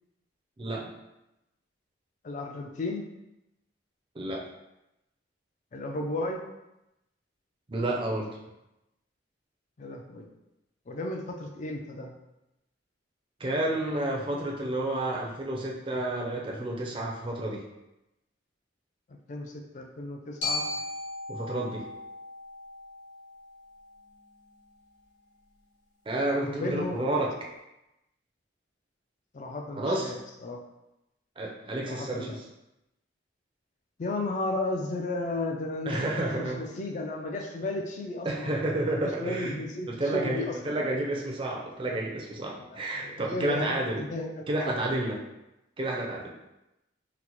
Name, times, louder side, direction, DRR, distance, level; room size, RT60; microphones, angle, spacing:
voice 1, 0.6-0.9 4.2-4.5 7.7-8.3 13.4-17.6 21.3-21.8 26.1-27.3 29.8-30.2 31.4-32.4 35.9-36.7 38.2-39.6 39.9-44.1 44.5-45.2 45.8-46.4, right 1 dB, 25° right, -1 dB, 0.4 m, -30 dB
voice 2, 2.2-3.1 5.7-6.5 9.8-10.3 10.9-12.1 19.1-20.6 26.4-27.0 29.3-30.2 30.4-30.6 31.9-32.3 34.0-38.5 39.0-40.6 42.6-42.7 42.9-44.8, left 2 dB, 40° left, 2 dB, 0.4 m, -34 dB
Glockenspiel, 20.4-24.5, left 2 dB, 80° left, 1.3 m, -37 dB
3.9 x 2.1 x 2.9 m, 0.92 s
head